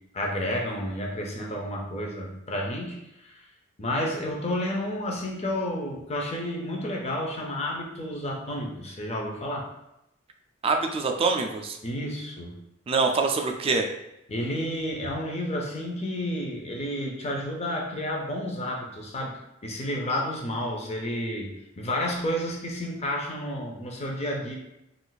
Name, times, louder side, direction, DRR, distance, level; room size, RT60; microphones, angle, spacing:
voice 1, 0.1-3.4 3.8-9.7 11.8-12.5 14.3-24.5, left 1 dB, 30° left, 0 dB, 0.6 m, -31 dB
voice 2, 10.6-11.8 12.9-13.9, right 4 dB, 30° right, 4 dB, 0.3 m, -24 dB
2.5 x 2.4 x 3.9 m, 0.85 s
head